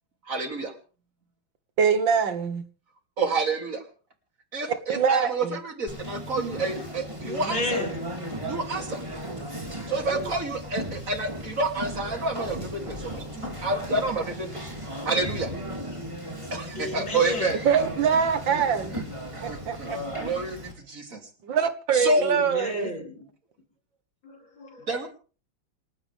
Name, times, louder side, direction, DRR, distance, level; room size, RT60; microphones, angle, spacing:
voice 1, 0.3-0.7 3.2-3.8 4.5-7.6 8.4-9.0 9.9-14.6 15.0-15.5 16.5-17.6 18.9-19.0 19.3-21.2 21.9-22.2 24.9-25.1, right 3 dB, 40° right, 4 dB, 3.2 m, -29 dB
voice 2, 1.8-2.6 4.9-5.6 17.7-19.0 19.4-20.0 21.4-22.9, right 7 dB, 70° right, 11 dB, 2.0 m, -24 dB
Conversation, 5.9-20.7, equal, 15° right, 3.5 m, -36 dB
voice 3, 7.2-8.1 10.1-10.3 16.8-17.6 22.2-23.2 24.2-25.1, left 2 dB, 70° left, -1 dB, 6.0 m, -33 dB
28.5 x 12.0 x 3.5 m, 0.39 s
omnidirectional pair, 2.2 m